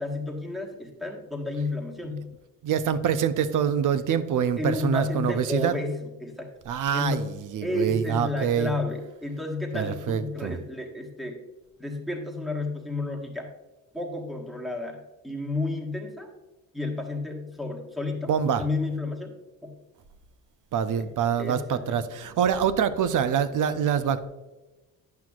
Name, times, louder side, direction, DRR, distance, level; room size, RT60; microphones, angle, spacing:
voice 1, 0.0-2.3 4.6-6.5 6.9-7.3 7.6-11.4 11.8-13.5 13.9-16.3 16.7-19.3 19.6-19.8 21.0-21.1 21.4-22.0, left 2 dB, ahead, 0 dB, 1.4 m, -31 dB
voice 2, 2.6-5.7 6.7-8.7 9.7-10.6 18.3-18.6 20.7-24.3, right 8 dB, 50° right, 12 dB, 0.6 m, -25 dB
9.6 x 5.8 x 2.4 m, 1.1 s
supercardioid pair, 75°, 41 cm